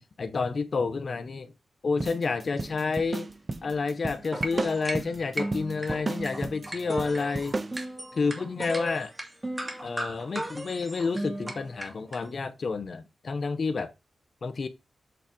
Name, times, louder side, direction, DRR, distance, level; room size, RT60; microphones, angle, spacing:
voice 1, 0.2-1.5 1.8-3.3 3.6-7.6 8.1-9.1 9.8-13.9 14.4-14.7, left 4 dB, 60° left, 1.4 m, -29 dB
sound 1, 2.0-7.8, right 2 dB, 35° right, 0.9 m, -35 dB
sound 2, 4.3-12.2, right 1 dB, 20° right, 2.4 m, -36 dB
8.4 x 4.1 x 4.7 m
cardioid pair, 65°, 0 cm